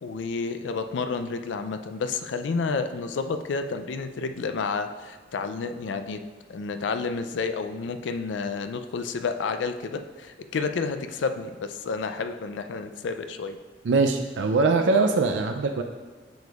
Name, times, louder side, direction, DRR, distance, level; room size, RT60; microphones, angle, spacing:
voice 1, 0.0-6.2 6.5-13.6, left 4 dB, 85° left, 8 dB, 0.4 m, -30 dB
voice 2, 13.8-15.8, right 3 dB, 85° right, 5 dB, 0.4 m, -22 dB
7.8 x 6.7 x 2.4 m, 1.4 s
head